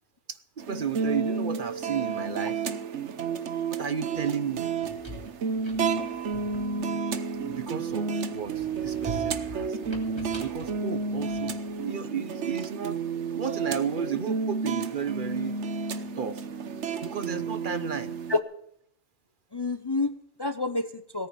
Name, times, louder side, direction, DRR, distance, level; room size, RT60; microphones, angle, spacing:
voice 1, 0.3-2.6 3.7-4.7 7.4-13.0 13.3-15.6 16.2-16.4 17.0-18.2, right 7 dB, 50° right, 12 dB, 0.9 m, -33 dB
sound 1, 0.6-18.4, right 5 dB, 85° right, 1.2 m, -31 dB
sound 2, 4.8-7.9 8.4-11.8, equal, 25° right, 3.2 m, -43 dB
voice 2, 19.5-21.3, left 3 dB, 30° left, 10 dB, 0.6 m, -29 dB
17.5 x 9.3 x 7.1 m, 0.69 s
omnidirectional pair, 1.2 m